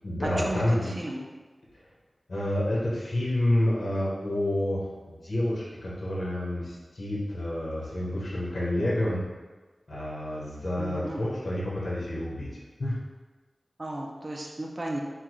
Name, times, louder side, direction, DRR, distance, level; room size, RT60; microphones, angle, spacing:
voice 1, 0.0-0.9 2.3-9.2 9.9-12.5 12.8-12.9, left 1 dB, 65° left, -7 dB, 1.3 m, -29 dB
voice 2, 10.8-11.2 13.8-15.0, right 1 dB, 35° right, -1 dB, 0.6 m, -34 dB
5.9 x 2.4 x 3.1 m, 1.3 s
wide cardioid pair, 90°, 0 cm